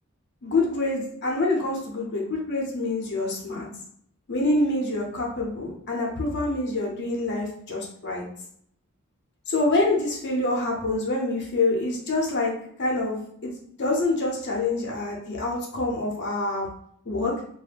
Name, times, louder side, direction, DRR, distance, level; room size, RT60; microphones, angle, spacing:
voice 1, 0.4-3.7 4.3-8.2 9.5-12.5 12.8-13.5 13.8-16.7 17.1-17.4, left 2 dB, 50° left, -2 dB, 0.6 m, -26 dB
2.3 x 2.0 x 3.3 m, 0.66 s
head